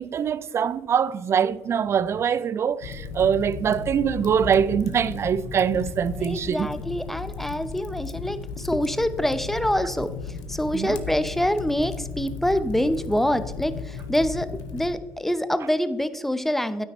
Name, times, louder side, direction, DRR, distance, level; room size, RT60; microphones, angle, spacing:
voice 1, 0.0-6.7 10.7-11.0, right 7 dB, 45° right, 0.4 m, -23 dB
Fire, 2.8-14.9, left 5 dB, 80° left, 0.8 m, -35 dB
voice 2, 6.2-10.1 10.5-16.8, equal, 5° left, 0.7 m, -26 dB
9.4 x 9.1 x 3.0 m
hypercardioid pair, 65°, 6 cm